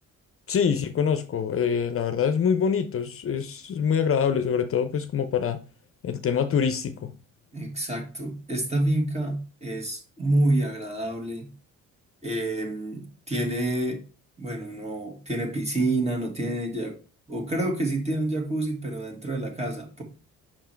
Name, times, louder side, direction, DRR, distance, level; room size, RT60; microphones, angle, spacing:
voice 1, 0.5-5.6 6.0-7.1, left 7 dB, 45° left, 0.6 m, -25 dB
voice 2, 7.5-11.5 12.2-14.0 14.4-16.9 17.3-20.0, right 1 dB, 20° right, 2.0 m, -28 dB
5.9 x 4.6 x 4.4 m
cardioid pair, 90°, 30 cm